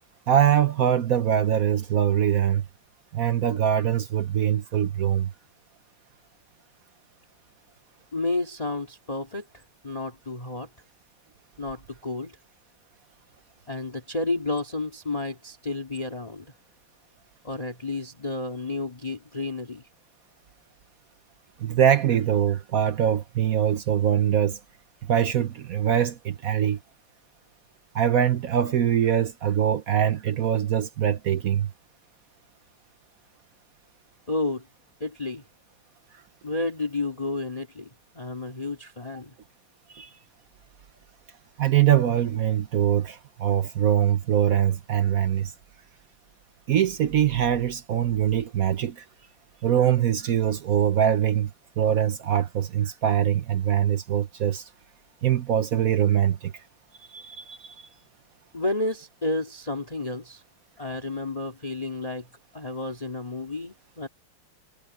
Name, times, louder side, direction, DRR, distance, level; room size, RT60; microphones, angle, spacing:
voice 1, 0.3-2.7 3.1-5.3 21.6-24.6 25.1-26.8 27.9-31.7 39.9-40.1 41.6-45.5 46.7-49.0 49.6-51.5 51.8-54.6 55.2-56.5 57.1-57.9, right 10 dB, 65° right, 0.9 m, -23 dB
voice 2, 8.1-10.7 11.6-12.4 13.7-16.5 17.4-19.8 34.3-34.6 35.0-35.4 36.4-37.9 38.1-39.3 58.5-60.4 60.8-62.3 62.5-64.1, left 2 dB, 15° left, 2.4 m, -31 dB
omnidirectional pair, 2.4 m